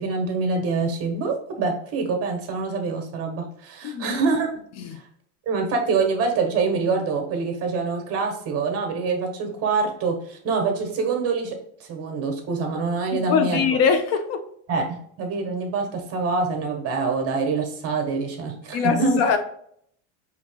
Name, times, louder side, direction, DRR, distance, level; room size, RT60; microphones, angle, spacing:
voice 1, 0.0-4.5 5.5-11.5 11.8-13.6 14.7-19.2, right 4 dB, 40° right, 1.3 m, -25 dB
voice 2, 3.8-4.2 4.8-5.0 13.1-14.4 18.7-19.4, left 6 dB, 45° left, 0.6 m, -22 dB
4.8 x 2.9 x 3.6 m
supercardioid pair, 125°, 36 cm